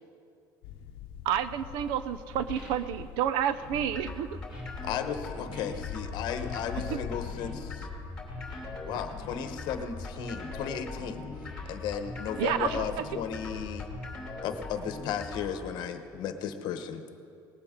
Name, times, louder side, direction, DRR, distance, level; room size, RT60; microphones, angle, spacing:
sound 1, 0.6-14.3, left 9 dB, 80° left, 0.7 m, -44 dB
voice 1, 1.2-4.4 6.8-7.0 12.4-13.1, right 10 dB, 80° right, 14 dB, 0.6 m, -30 dB
sound 2, 1.9-2.0 2.4-3.1 3.5-3.8 4.1-4.2 4.5-4.6 5.1-6.0 6.3-6.7 7.2-7.7 8.3-8.9 9.2-9.8 10.2-10.8 11.3-12.8, left 1 dB, 15° right, 3.4 m, -52 dB
sound 3, 3.5-15.5, left 2 dB, 10° left, 2.8 m, -41 dB
voice 2, 4.8-7.9 8.8-11.3 11.6-13.9 14.4-17.0, left 8 dB, 60° left, 8 dB, 1.0 m, -35 dB
19.0 x 15.0 x 3.7 m, 2.5 s
cardioid pair, 160°, 8 cm